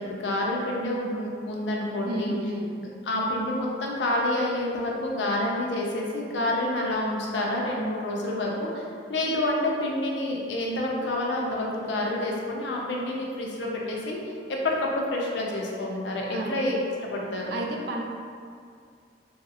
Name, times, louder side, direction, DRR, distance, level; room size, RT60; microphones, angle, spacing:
voice 1, 0.0-2.3 2.8-8.8 9.1-14.3 14.6-17.5, left 1 dB, 85° left, -2 dB, 0.5 m, -28 dB
voice 2, 2.0-2.7 16.3-16.6 17.5-18.0, right 1 dB, 65° right, 0 dB, 0.4 m, -32 dB
3.1 x 2.8 x 2.4 m, 2.3 s
head